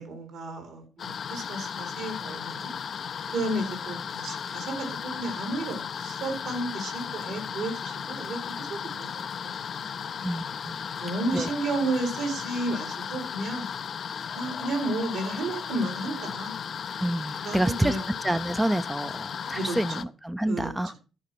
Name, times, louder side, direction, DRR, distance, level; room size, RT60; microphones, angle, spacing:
voice 1, 0.0-2.7 3.3-9.1 9.4-9.7 10.1-10.3 11.0-13.7 14.3-16.5 17.4-18.0 19.5-20.0 20.5-21.0, right 2 dB, 75° right, 4.4 m, -32 dB
sound 1, 1.0-20.0, left 7 dB, 55° left, 0.5 m, -35 dB
voice 2, 10.2-10.9 11.3-11.5 17.0-18.0 18.2-20.9, right 1 dB, 10° right, 0.5 m, -28 dB
14.0 x 4.9 x 6.0 m
cardioid pair, 90°, 0 cm